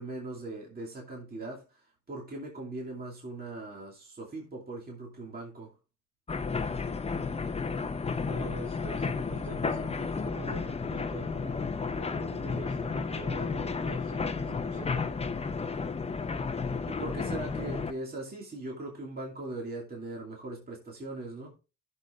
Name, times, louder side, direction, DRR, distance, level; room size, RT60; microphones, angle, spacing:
voice 1, 0.0-5.7 16.9-21.6, right 2 dB, 30° right, 2.6 m, -40 dB
sound 1, 6.3-17.9, left 4 dB, 20° left, 0.8 m, -32 dB
voice 2, 8.3-11.6 11.8-15.1, right 4 dB, 70° right, 2.5 m, -44 dB
15.0 x 6.7 x 2.5 m
cardioid pair, 90°, 30 cm